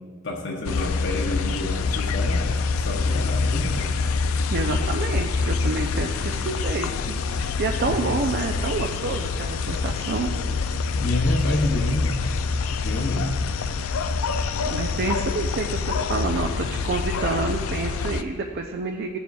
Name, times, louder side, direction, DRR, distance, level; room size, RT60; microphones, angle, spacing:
voice 1, 0.2-4.0 7.9-8.0 11.0-12.2 12.8-13.4, left 1 dB, 55° left, -1 dB, 0.8 m, -28 dB
sound 1, 0.6-18.2, left 4 dB, 85° left, 0.4 m, -26 dB
voice 2, 4.5-10.3 14.7-19.2, right 3 dB, 50° right, 3 dB, 0.4 m, -28 dB
16.0 x 7.1 x 2.3 m, 2.1 s
head